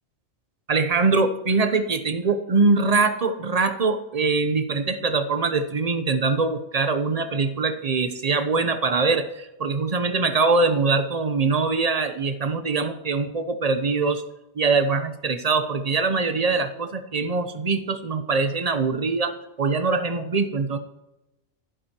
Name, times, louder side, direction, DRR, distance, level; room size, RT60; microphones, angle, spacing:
voice 1, 0.7-14.2 14.5-20.8, right 4 dB, 40° right, 9 dB, 0.8 m, -23 dB
11.5 x 11.0 x 3.0 m, 0.94 s
omnidirectional pair, 1.2 m